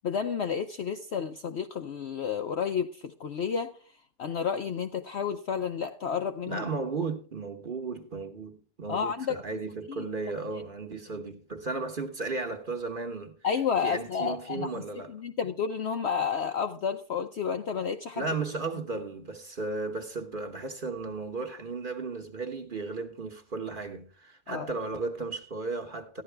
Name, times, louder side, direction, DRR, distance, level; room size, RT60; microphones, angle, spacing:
voice 1, 0.0-3.7 4.2-6.6 8.9-9.4 9.9-10.0 13.4-14.7 15.1-18.2 24.5-24.7, left 7 dB, 60° left, 0.7 m, -31 dB
voice 2, 6.5-13.3 13.8-15.1 18.2-26.2, right 3 dB, 40° right, 1.0 m, -35 dB
13.5 x 11.0 x 3.3 m
omnidirectional pair, 1.7 m